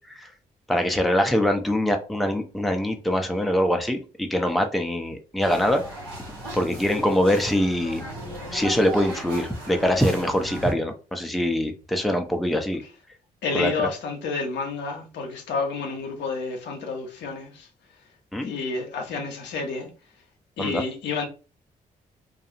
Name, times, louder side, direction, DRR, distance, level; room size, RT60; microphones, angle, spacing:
voice 1, 0.7-5.8 6.5-8.0 8.5-12.8 13.5-13.9 18.3-18.5 20.6-20.8, equal, ahead, 0.5 m, -23 dB
sound 1, 5.4-10.7, right 1 dB, 75° right, 1.3 m, -37 dB
voice 2, 13.4-17.7 18.4-19.9 20.6-21.3, left 4 dB, 65° left, 0.7 m, -30 dB
2.4 x 2.3 x 2.7 m
hypercardioid pair, 45°, 19 cm